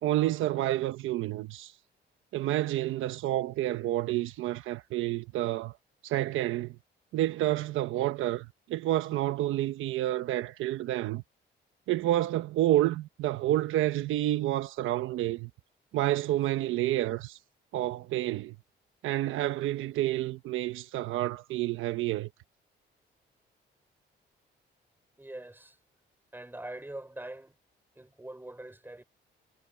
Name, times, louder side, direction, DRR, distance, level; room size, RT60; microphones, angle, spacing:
voice 1, 0.0-1.7 2.3-5.7 6.0-6.7 7.1-11.2 11.9-15.5 15.9-17.4 17.7-18.5 19.0-22.3, right 14 dB, 85° right, 1.1 m, -29 dB
voice 2, 25.2-25.8 26.3-27.6 28.0-29.0, right 1 dB, 10° right, 5.9 m, -43 dB
cardioid pair, 90°, 20 cm